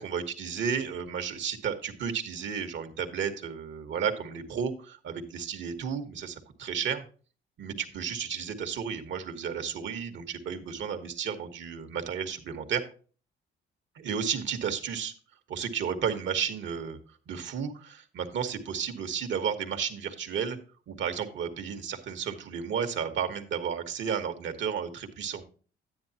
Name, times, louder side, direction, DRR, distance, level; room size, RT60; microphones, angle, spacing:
voice 1, 0.0-7.0 7.6-12.8 14.0-15.1 15.5-17.0 17.3-20.6 20.9-25.4, right 7 dB, 70° right, 7 dB, 1.4 m, -32 dB
9.9 x 9.5 x 2.8 m, 0.38 s
cardioid pair, 90°, 20 cm